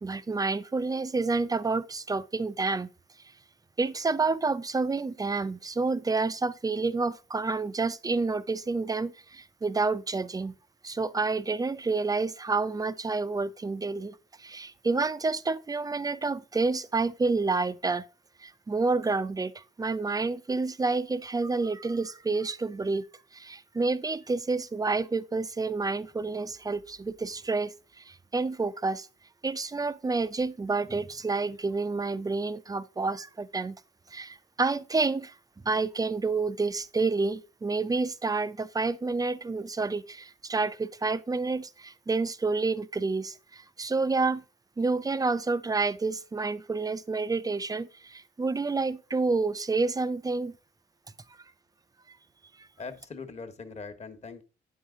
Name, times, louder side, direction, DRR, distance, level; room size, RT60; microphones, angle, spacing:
voice 1, 0.0-2.9 3.8-10.5 10.8-18.0 18.4-23.0 23.3-29.1 29.4-33.8 34.1-35.4 35.6-44.4 44.8-50.5, right 3 dB, 20° right, 0.5 m, -29 dB
voice 2, 52.8-54.4, left 4 dB, 35° left, 1.3 m, -41 dB
9.2 x 5.6 x 3.8 m
cardioid pair, 90°, 20 cm